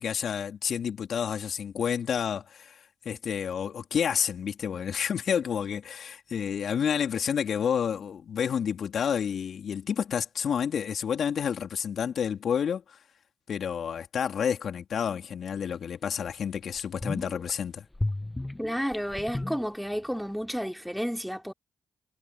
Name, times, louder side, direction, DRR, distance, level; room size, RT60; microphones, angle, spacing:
voice 1, 0.0-13.0 13.5-17.8, left 7 dB, 65° left, 3.5 m, -30 dB
sound 1, 15.7-15.8 16.3-16.4 16.7-17.5 17.9-20.2 20.5-20.6, left 2 dB, 15° left, 1.8 m, -34 dB
voice 2, 18.6-21.5, equal, ahead, 3.5 m, -31 dB
hypercardioid pair, 45°, 0 cm